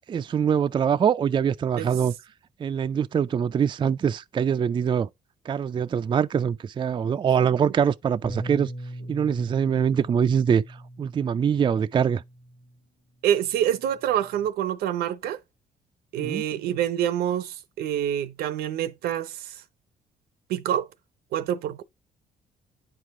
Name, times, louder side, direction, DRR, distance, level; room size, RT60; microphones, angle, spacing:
voice 1, 0.1-2.1 2.6-5.1 5.5-8.7 9.1-12.2 16.2-16.4, right 7 dB, 30° right, 0.3 m, -23 dB
Bass guitar, 8.2-12.7 13.5-14.5, right 1 dB, 35° left, 1.4 m, -41 dB
voice 2, 13.2-15.4 16.1-19.5 20.5-20.9 21.3-21.8, right 10 dB, 80° right, 0.7 m, -26 dB
9.2 x 4.8 x 3.6 m
cardioid pair, 85°, 16 cm